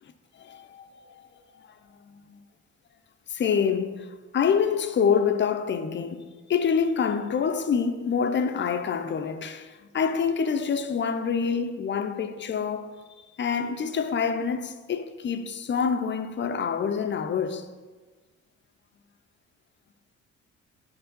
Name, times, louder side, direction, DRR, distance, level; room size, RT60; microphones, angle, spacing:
voice 1, 0.4-0.9 1.2-1.7 2.1-2.4 3.3-4.1 4.3-6.2 6.5-12.9 13.4-17.6, left 6 dB, 40° left, 0.5 m, -26 dB
5.4 x 4.6 x 5.2 m
cardioid pair, 90°, 30 cm